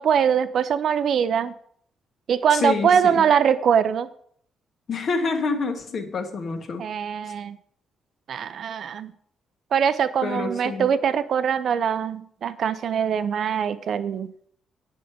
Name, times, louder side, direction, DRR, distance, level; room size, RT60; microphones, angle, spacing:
voice 1, 0.0-1.5 2.3-4.1 6.8-7.6 8.3-9.1 9.7-14.3, right 7 dB, 55° right, 13 dB, 0.7 m, -22 dB
voice 2, 2.5-3.3 4.9-6.8 10.2-10.9, left 4 dB, 45° left, 5 dB, 1.6 m, -27 dB
9.5 x 5.0 x 7.9 m, 0.63 s
cardioid pair, 135°, 0 cm